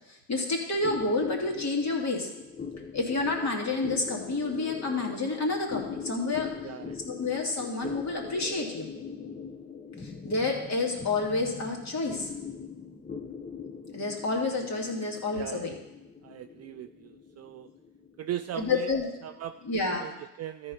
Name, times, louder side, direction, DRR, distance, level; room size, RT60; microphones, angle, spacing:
voice 1, 0.1-2.3 2.9-6.5 7.0-8.9 10.0-12.3 13.9-15.8 18.5-19.1 19.6-20.1, left 3 dB, 35° left, 1 dB, 2.6 m, -29 dB
sound 1, 0.8-19.6, left 5 dB, 15° left, 0.9 m, -42 dB
voice 2, 6.6-7.0 15.4-15.7 16.2-17.7 18.2-18.9 19.2-19.5 19.9-20.7, right 11 dB, 35° right, 9 dB, 0.4 m, -39 dB
13.5 x 4.6 x 5.5 m, 0.97 s
hypercardioid pair, 70°, 47 cm